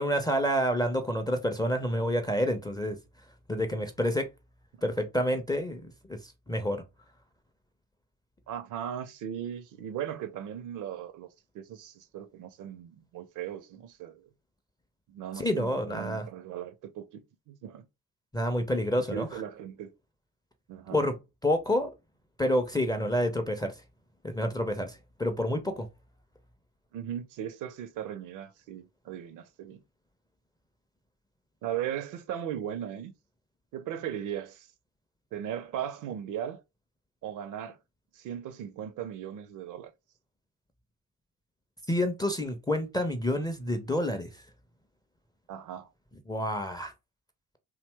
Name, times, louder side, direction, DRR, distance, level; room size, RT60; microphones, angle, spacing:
voice 1, 0.0-3.0 3.5-4.3 4.8-6.2 6.5-6.8 15.4-16.2 18.3-19.3 20.9-21.1 21.4-21.9 22.4-23.7 24.2-25.9 41.9-44.3 46.3-46.9, equal, 10° left, 0.4 m, -28 dB
voice 2, 8.5-11.3 11.5-14.3 15.1-17.9 19.1-19.9 20.7-21.0 26.9-29.8 31.6-33.1 33.7-34.7 35.3-36.6 37.2-37.8 38.1-39.9 45.5-45.9, right 10 dB, 50° right, 0.4 m, -37 dB
2.7 x 2.0 x 3.2 m
figure-of-eight pair, 40°, 43 cm